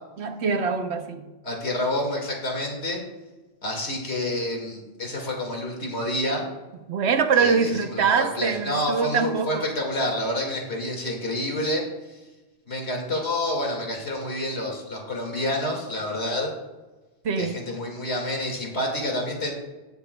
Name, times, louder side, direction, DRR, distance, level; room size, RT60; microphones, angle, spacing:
voice 1, 0.2-1.3 6.9-9.6 17.2-17.6, right 5 dB, 80° right, 7 dB, 1.1 m, -23 dB
voice 2, 1.4-3.0 3.6-6.5 7.4-12.2 12.7-16.5 17.4-19.5, left 1 dB, 85° left, 1 dB, 2.4 m, -28 dB
17.0 x 6.8 x 2.3 m, 1.2 s
omnidirectional pair, 1.1 m